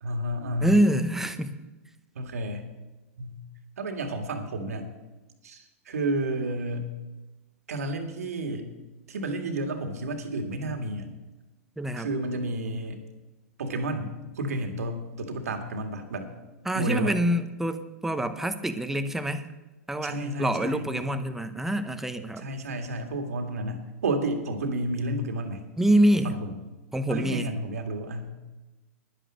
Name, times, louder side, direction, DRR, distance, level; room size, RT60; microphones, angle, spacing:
voice 1, 0.0-0.8 2.2-2.7 3.2-3.4 3.8-4.9 5.4-6.9 7.7-8.7 9.1-11.1 12.0-13.0 13.6-16.3 16.7-17.1 20.0-20.9 22.4-25.7 26.2-26.5 27.1-28.3, right 1 dB, 85° right, 5 dB, 2.0 m, -31 dB
voice 2, 0.6-1.6 11.8-12.1 16.7-19.5 19.9-22.5 25.8-26.4 26.9-27.5, right 1 dB, 5° right, 9 dB, 0.9 m, -25 dB
11.0 x 10.0 x 6.3 m, 1.1 s
hypercardioid pair, 125°, 8 cm